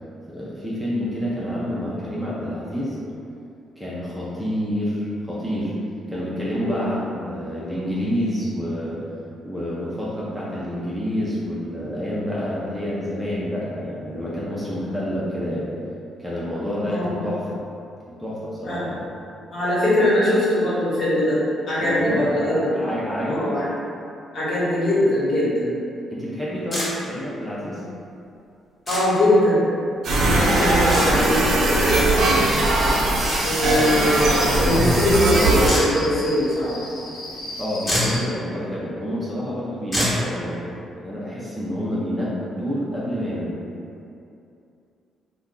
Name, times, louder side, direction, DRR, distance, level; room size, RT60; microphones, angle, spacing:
voice 1, 0.3-3.0 3.8-5.7 6.1-9.0 9.4-15.7 16.2-17.6 18.1-19.1 21.8-23.5 26.1-27.8 37.6-43.6, equal, 5° right, -8 dB, 0.6 m, -28 dB
voice 2, 6.6-6.9 16.8-17.2 18.6-18.8 19.5-21.4 21.7-22.7 23.3-23.7 24.3-25.7 28.9-29.6 30.2-32.5 33.4-36.7, left 1 dB, 50° left, -10 dB, 1.3 m, -21 dB
sound 1, 26.7-26.9 28.9-29.0 30.9-31.1 33.2-33.4 35.7-35.8 37.5-37.6 37.8-38.2 39.9-40.2, equal, 20° left, 1.1 m, -24 dB
sound 2, 30.0-35.7, right 2 dB, 65° right, 0.5 m, -20 dB
Cricket, 32.2-38.2, left 2 dB, 85° left, 0.6 m, -35 dB
2.6 x 2.3 x 3.6 m, 2.6 s
cardioid pair, 90°, 0 cm